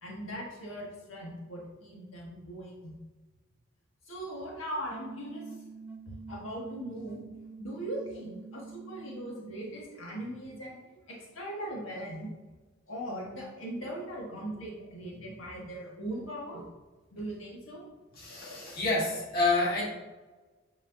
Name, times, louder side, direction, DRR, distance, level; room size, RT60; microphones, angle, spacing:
voice 1, 0.0-2.9 4.1-5.6 6.3-7.2 7.6-12.3 12.9-16.6 17.1-17.8, right 1 dB, 85° left, -3 dB, 1.6 m, -39 dB
sound 1, 4.9-9.9, right 5 dB, 10° right, 0.4 m, -47 dB
voice 2, 18.2-19.9, left 3 dB, 50° left, -4 dB, 1.7 m, -28 dB
7.9 x 4.8 x 2.7 m, 1.2 s
head